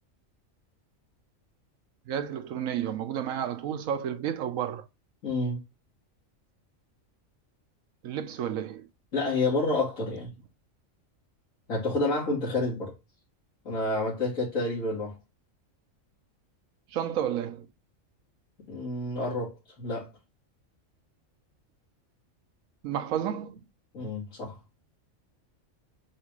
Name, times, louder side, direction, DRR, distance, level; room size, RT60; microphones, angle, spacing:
voice 1, 2.1-4.9 8.0-8.9 16.9-17.7 22.8-23.6, right 9 dB, 85° right, 1.1 m, -31 dB
voice 2, 5.2-5.6 9.1-10.3 11.7-12.9 13.7-15.2 18.7-20.1 23.9-24.6, left 2 dB, 90° left, 2.2 m, -29 dB
7.3 x 2.4 x 3.0 m
omnidirectional pair, 1.4 m